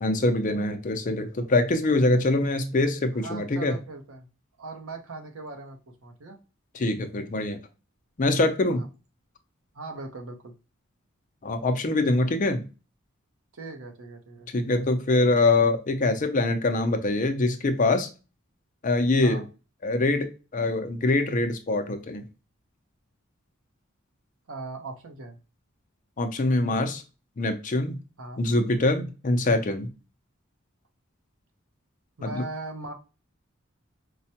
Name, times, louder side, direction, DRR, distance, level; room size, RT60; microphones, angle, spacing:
voice 1, 0.0-3.7 6.7-7.6 8.2-8.8 11.4-12.6 14.5-18.1 18.8-19.4 19.8-22.2 26.2-27.0 27.4-28.0 28.4-29.9 32.2-32.4, left 2 dB, 40° left, 6 dB, 0.5 m, -24 dB
voice 2, 3.2-4.3 4.6-6.4 8.7-8.9 9.7-10.5 13.5-14.5 19.2-19.4 24.5-25.4 28.2-28.4 29.0-29.2 32.2-32.9, right 2 dB, 80° right, 4 dB, 0.8 m, -39 dB
4.6 x 2.1 x 2.8 m, 0.31 s
head